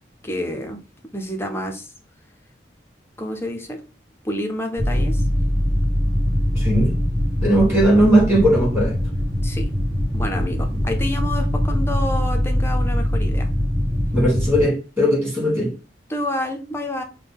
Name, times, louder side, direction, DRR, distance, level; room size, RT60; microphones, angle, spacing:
voice 1, 0.2-0.8 1.1-1.9 3.2-3.8 4.2-5.2 9.4-9.7 10.1-13.5 16.1-17.0, left 1 dB, 15° left, 0.6 m, -28 dB
sound 1, 4.8-14.6, left 1 dB, 40° right, 1.4 m, -22 dB
voice 2, 6.5-6.9 7.4-8.9 14.1-15.7, right 1 dB, 15° right, 2.2 m, -18 dB
5.9 x 2.2 x 3.5 m
head